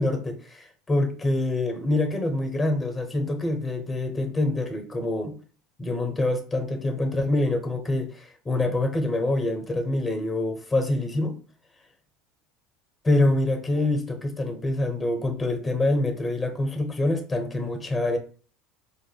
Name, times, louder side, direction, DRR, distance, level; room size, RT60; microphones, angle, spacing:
voice 1, 0.0-5.4 5.8-11.4 13.0-18.2, left 2 dB, 20° left, 0.9 m, -25 dB
4.8 x 2.5 x 2.3 m
supercardioid pair, 95°, 0 cm